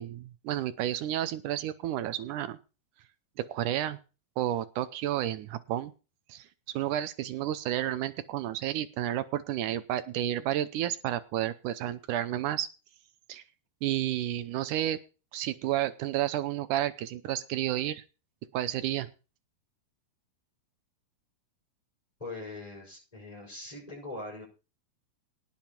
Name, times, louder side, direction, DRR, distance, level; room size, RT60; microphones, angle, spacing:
voice 1, 0.0-2.6 3.5-4.0 4.4-5.9 6.3-6.5 6.7-12.7 13.3-13.4 13.8-15.0 15.3-18.0 18.5-19.1, right 12 dB, 75° right, 13 dB, 1.9 m, -31 dB
voice 2, 22.2-24.5, left 2 dB, 10° left, -5 dB, 6.2 m, -41 dB
18.5 x 7.2 x 4.5 m, 0.32 s
omnidirectional pair, 4.4 m